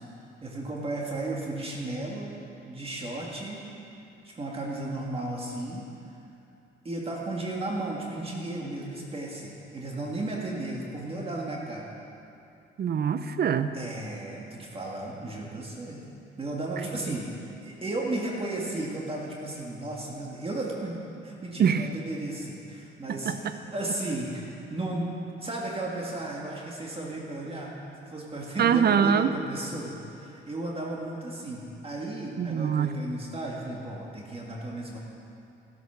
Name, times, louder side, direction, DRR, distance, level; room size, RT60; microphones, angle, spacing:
voice 1, 0.4-2.3 2.7-3.6 4.2-5.9 6.8-11.9 13.7-16.1 16.4-17.3 17.6-25.1 25.4-27.7 28.0-35.0, right 2 dB, 30° right, -2 dB, 2.0 m, -34 dB
voice 2, 12.8-13.8 21.6-21.9 23.1-23.5 28.6-29.3 32.4-33.0, right 7 dB, 55° right, 11 dB, 0.7 m, -24 dB
15.0 x 8.5 x 6.0 m, 2.7 s
cardioid pair, 90°, 20 cm